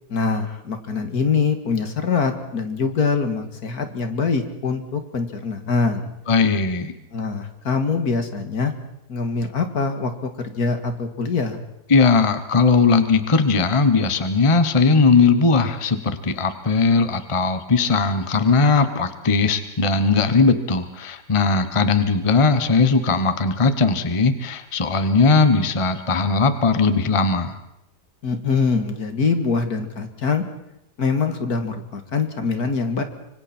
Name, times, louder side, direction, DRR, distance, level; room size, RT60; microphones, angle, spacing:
voice 1, 0.1-6.1 7.1-8.7 9.1-11.6 28.2-30.4 31.0-33.0, left 4 dB, 60° left, 7 dB, 2.3 m, -23 dB
voice 2, 6.3-6.9 11.9-27.6, left 4 dB, 20° left, 10 dB, 1.0 m, -18 dB
25.5 x 25.5 x 4.4 m, 0.81 s
omnidirectional pair, 1.8 m